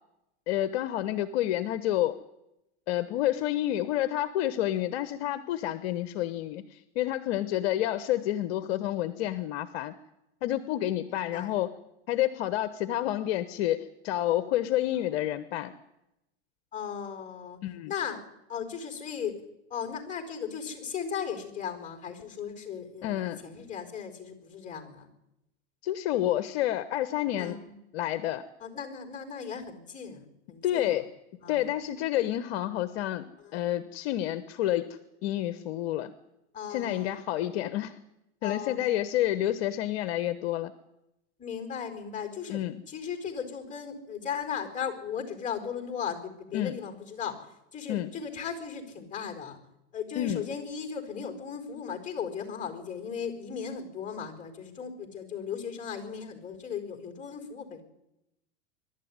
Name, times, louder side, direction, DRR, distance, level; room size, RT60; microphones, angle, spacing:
voice 1, 0.5-2.2 2.9-9.9 10.4-11.7 12.1-15.8 17.6-17.9 23.0-23.4 25.8-27.6 27.9-28.4 30.6-31.1 31.5-34.9 35.2-36.1 36.7-38.0 38.4-40.7 42.5-42.8 46.5-46.8 47.9-48.1 50.2-50.5, left 13 dB, 60° left, 13 dB, 1.1 m, -29 dB
voice 2, 11.1-11.5 16.7-17.6 17.9-18.2 18.5-19.3 19.7-25.1 27.4-27.8 28.6-30.9 31.4-31.7 33.4-33.8 36.5-37.2 38.4-38.8 41.4-42.6 42.9-47.5 47.7-49.6 49.9-57.8, left 7 dB, 20° left, 6 dB, 4.4 m, -37 dB
23.0 x 12.0 x 9.6 m, 0.91 s
hypercardioid pair, 120°, 34 cm